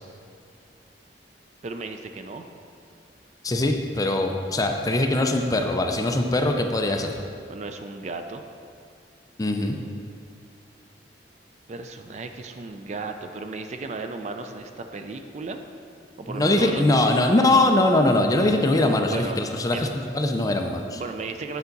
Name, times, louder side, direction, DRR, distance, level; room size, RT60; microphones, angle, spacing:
voice 1, 1.6-2.5 7.5-8.4 11.7-15.6 16.2-16.8 19.1-19.4 19.7-19.9 20.9-21.6, right 3 dB, 40° right, 6 dB, 0.4 m, -35 dB
voice 2, 3.4-7.2 9.4-9.7 16.3-21.0, left 2 dB, 20° left, 3 dB, 0.5 m, -22 dB
8.2 x 5.6 x 3.9 m, 2.4 s
head